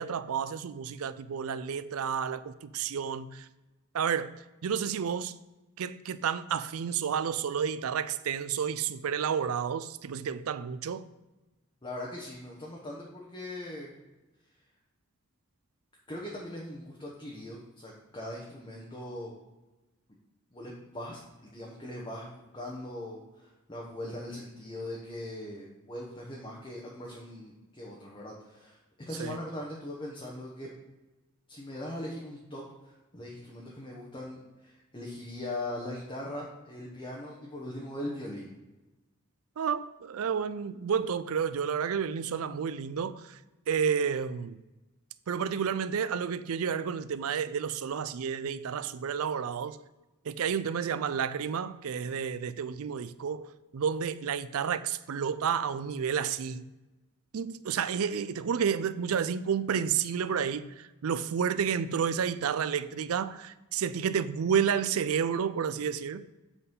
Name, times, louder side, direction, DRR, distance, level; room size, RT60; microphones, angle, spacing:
voice 1, 0.0-3.5 3.9-4.3 4.6-5.3 5.8-11.1 29.2-29.4 39.6-43.4 43.7-44.6 45.3-49.8 50.3-53.5 53.7-56.7 57.3-66.2, right 7 dB, 80° right, 0.4 m, -30 dB
voice 2, 11.8-13.9 16.1-19.3 20.5-28.8 29.1-30.7 31.5-38.5, left 1 dB, 20° left, 1.1 m, -40 dB
8.0 x 4.1 x 5.4 m
head